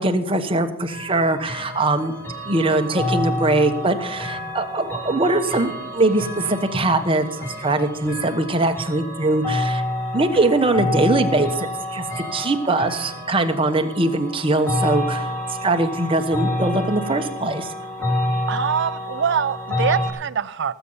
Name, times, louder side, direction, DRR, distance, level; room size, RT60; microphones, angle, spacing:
voice 1, 0.0-2.1 2.5-9.8 10.1-15.3 15.6-17.7, right 2 dB, 25° right, 6 dB, 1.1 m, -21 dB
sound 1, 0.9-20.1, left 1 dB, 10° left, 3.3 m, -28 dB
voice 2, 18.5-20.7, right 7 dB, 55° right, 13 dB, 0.5 m, -24 dB
18.5 x 8.1 x 5.6 m, 0.78 s
head